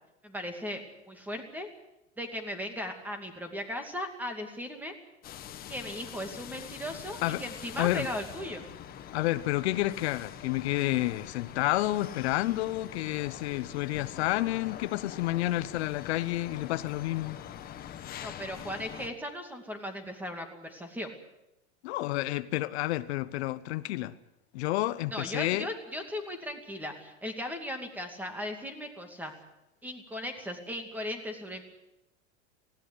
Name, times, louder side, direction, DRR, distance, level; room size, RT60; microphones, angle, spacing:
voice 1, 0.2-1.7 2.2-4.9 5.7-8.6 18.2-21.1 25.1-29.3 29.8-31.6, left 1 dB, 5° right, 2.5 m, -37 dB
sound 1, 5.2-19.1, left 10 dB, 25° left, 1.4 m, -44 dB
voice 2, 9.1-17.4 21.8-24.1 24.5-25.7, left 17 dB, 65° left, 0.9 m, -30 dB
19.5 x 16.5 x 9.7 m
supercardioid pair, 150°, 35 cm